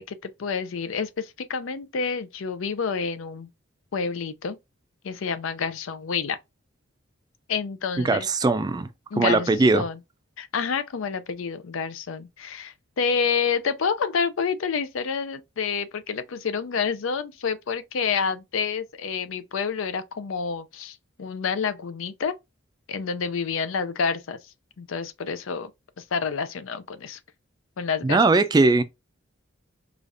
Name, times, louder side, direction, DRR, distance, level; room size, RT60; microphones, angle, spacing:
voice 1, 0.0-3.5 3.9-4.6 5.0-6.4 7.5-8.3 9.1-10.0 10.4-22.3 22.9-24.4 24.8-25.7 26.0-27.2 27.8-28.2, left 5 dB, 75° left, 0.5 m, -28 dB
voice 2, 8.0-8.9 9.2-9.8 28.0-28.8, right 3 dB, 20° right, 0.3 m, -20 dB
4.9 x 2.4 x 2.6 m
head